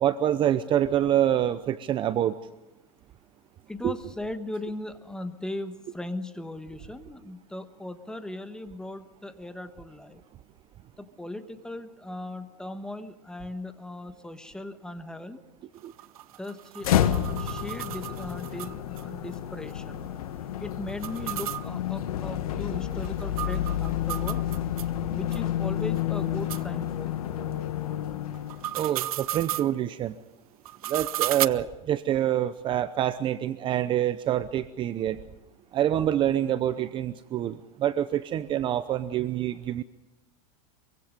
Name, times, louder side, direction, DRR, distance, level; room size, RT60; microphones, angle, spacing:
voice 1, 0.0-2.3 3.8-3.9 15.8-15.9 28.7-30.2 30.9-35.2 35.7-39.8, right 11 dB, 25° right, 12 dB, 0.7 m, -26 dB
voice 2, 3.7-10.2 11.0-15.4 16.4-20.1 20.6-24.4 25.1-27.4, left 1 dB, 5° left, 9 dB, 1.4 m, -38 dB
sound 1, 15.8-19.0 19.3-19.4 19.7-19.8 20.9-24.9 25.3-25.4 26.0-26.1 26.5-26.6 28.3-29.7 30.7-31.5, right 14 dB, 90° right, 0.8 m, -34 dB
sound 2, 16.8-28.8, left 11 dB, 90° left, 1.6 m, -30 dB
24.5 x 24.0 x 5.3 m, 0.97 s
supercardioid pair, 145°, 18 cm